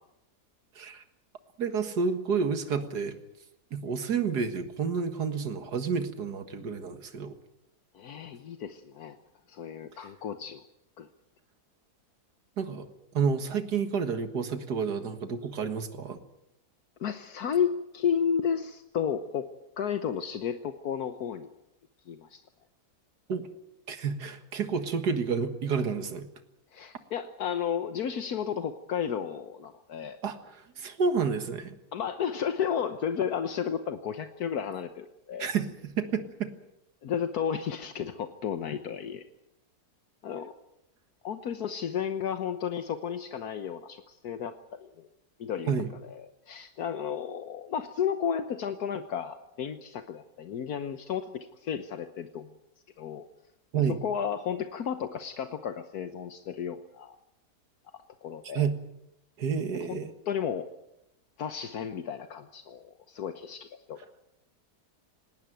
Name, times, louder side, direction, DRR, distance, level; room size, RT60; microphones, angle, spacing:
voice 1, 1.6-3.2 3.7-7.4 12.6-12.9 13.1-16.2 23.3-23.5 23.9-26.3 30.2-31.8 35.4-36.5 45.7-45.9 53.7-54.0 58.5-58.7 59.4-60.1, right 5 dB, 90° right, 9 dB, 2.2 m, -30 dB
voice 2, 7.9-9.2 9.5-10.6 11.0-11.1 17.0-19.5 19.8-21.5 22.1-22.4 26.7-30.2 31.9-35.5 37.0-39.2 40.2-40.5 41.2-45.1 45.4-45.7 46.1-46.2 46.5-52.5 53.0-53.3 54.0-57.2 58.2-58.7 59.9-60.0 60.3-60.7 61.4-64.0, left 8 dB, 75° left, 8 dB, 1.5 m, -33 dB
19.0 x 19.0 x 9.1 m, 0.84 s
omnidirectional pair, 1.7 m